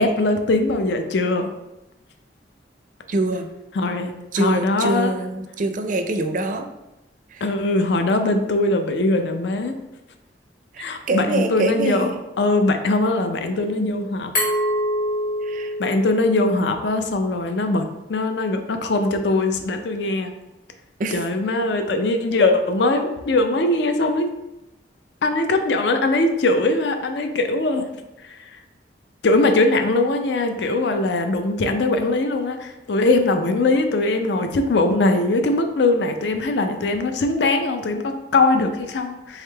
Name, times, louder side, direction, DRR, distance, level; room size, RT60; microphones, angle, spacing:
voice 1, 0.0-1.5 3.7-5.1 7.4-9.7 10.8-14.3 15.8-20.3 21.1-24.3 25.2-27.9 29.2-39.4, left 2 dB, 75° left, 6 dB, 0.4 m, -21 dB
voice 2, 3.1-3.5 4.3-6.7 7.3-7.5 10.7-12.1 15.4-15.7 21.0-21.2, right 2 dB, 50° right, 7 dB, 0.4 m, -24 dB
Glass, 14.4-17.1, equal, 55° left, 1.5 m, -25 dB
3.6 x 3.5 x 3.3 m, 0.96 s
head